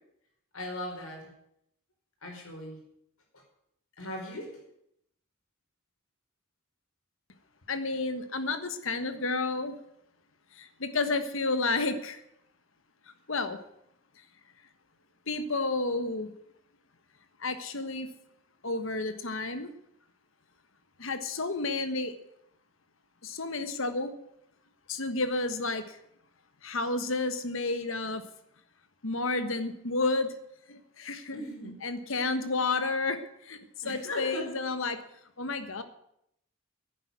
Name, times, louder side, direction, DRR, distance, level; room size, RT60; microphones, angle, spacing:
voice 1, 0.5-1.3 2.2-2.8 4.0-4.6 31.3-31.8 33.8-34.5, left 1 dB, 85° left, 2 dB, 4.7 m, -38 dB
voice 2, 7.7-9.7 10.5-12.2 13.3-13.6 15.3-16.3 17.4-18.1 18.6-19.7 21.0-22.1 23.2-24.1 24.9-26.0 26.6-28.2 29.0-30.3 30.7-31.4 31.8-33.6 33.8-35.0 35.4-35.8, left 3 dB, 65° left, 10 dB, 1.4 m, -31 dB
10.5 x 9.0 x 9.4 m, 0.76 s
head